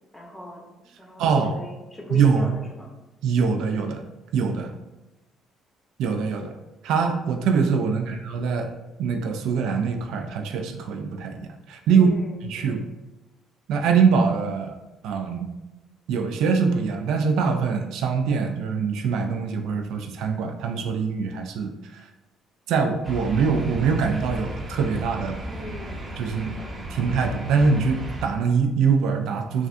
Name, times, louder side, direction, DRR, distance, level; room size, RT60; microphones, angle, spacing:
voice 1, 0.1-0.7 1.0-2.9 7.9-8.2 11.9-12.8 25.4-26.1 26.4-26.8, left 2 dB, 15° left, -1 dB, 0.8 m, -40 dB
voice 2, 1.2-1.5 2.1-2.5 3.2-4.0 4.3-4.7 6.0-6.5 6.8-8.7 9.0-12.1 12.4-12.8 13.7-14.7 15.0-15.5 16.1-22.1 22.7-25.4 26.2-26.5 26.9-29.7, right 5 dB, 80° right, 5 dB, 0.3 m, -23 dB
sound 1, 23.0-28.3, equal, 35° right, 0.6 m, -34 dB
3.2 x 2.4 x 2.6 m, 0.98 s
cardioid pair, 95°, 0 cm